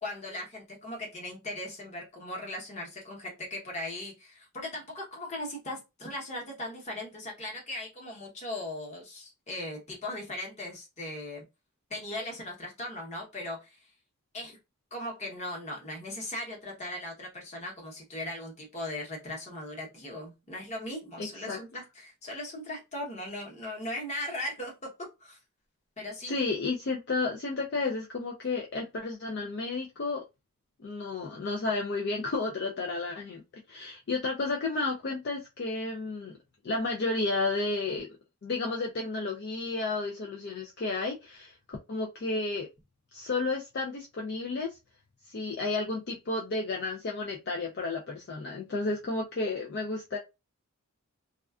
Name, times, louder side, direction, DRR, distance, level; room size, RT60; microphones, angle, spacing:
voice 1, 0.0-11.4 11.9-13.8 14.3-14.6 14.9-25.4 26.0-26.3, left 1 dB, 30° left, 0.9 m, -38 dB
voice 2, 21.2-21.6 26.3-30.2 30.8-33.4 33.7-36.4 36.6-38.1 38.4-42.7 43.1-44.7 45.3-50.2, left 3 dB, 50° left, 0.4 m, -32 dB
2.3 x 2.3 x 2.3 m
head